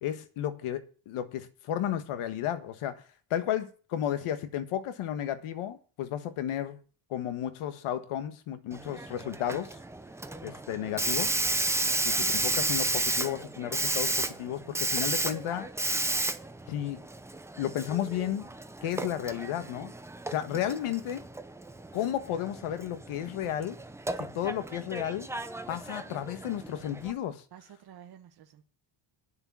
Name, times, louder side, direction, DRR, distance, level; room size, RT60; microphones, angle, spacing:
voice 1, 0.0-6.8 7.1-9.8 10.4-11.4 12.0-15.7 16.7-17.0 17.6-18.5 18.8-19.9 20.3-21.3 21.9-23.8 24.2-25.3 25.7-27.4, left 10 dB, 80° left, 1.5 m, -33 dB
Hiss, 8.7-27.1, right 2 dB, 5° right, 0.6 m, -33 dB
voice 2, 27.5-28.7, right 10 dB, 50° right, 1.5 m, -51 dB
10.0 x 6.8 x 8.5 m
cardioid pair, 155°, 50 cm